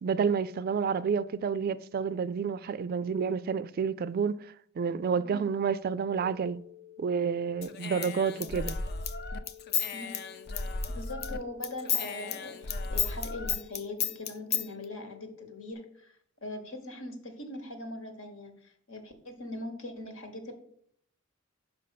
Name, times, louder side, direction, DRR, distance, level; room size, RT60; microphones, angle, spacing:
voice 1, 0.0-4.4 4.8-6.6 7.0-8.8, right 6 dB, 45° right, 0.3 m, -29 dB
voice 2, 5.2-5.5 7.9-8.1 8.4-8.5 9.9-10.2 10.9-20.5, left 2 dB, 75° left, 1.4 m, -41 dB
sound 1, 6.2-15.7, left 11 dB, ahead, 0.6 m, -52 dB
Human voice / Scissors, 7.6-11.4 11.6-14.7, left 6 dB, 50° left, 0.6 m, -33 dB
5.8 x 5.0 x 5.8 m
head